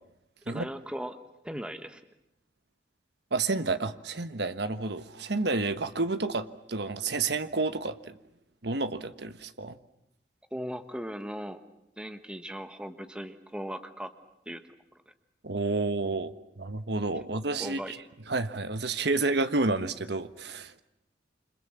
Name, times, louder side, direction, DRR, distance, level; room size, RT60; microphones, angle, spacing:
voice 1, 0.4-2.0 10.5-11.6 12.0-14.1 14.4-14.6 14.9-15.0 17.6-17.9, equal, 5° right, 8 dB, 1.3 m, -38 dB
voice 2, 3.3-8.2 8.6-9.8 15.4-18.0 18.3-20.8, right 3 dB, 65° right, 11 dB, 1.2 m, -30 dB
28.5 x 26.0 x 7.4 m, 0.82 s
head